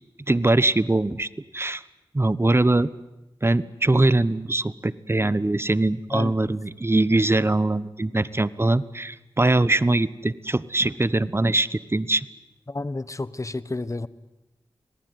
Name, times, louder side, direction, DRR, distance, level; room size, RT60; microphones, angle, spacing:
voice 1, 0.3-1.8 2.1-2.9 3.4-12.3, right 2 dB, 25° right, 18 dB, 1.1 m, -22 dB
voice 2, 6.1-6.5 12.7-14.1, left 2 dB, 35° left, 17 dB, 1.3 m, -31 dB
26.0 x 19.5 x 9.7 m, 0.95 s
cardioid pair, 40°, 9 cm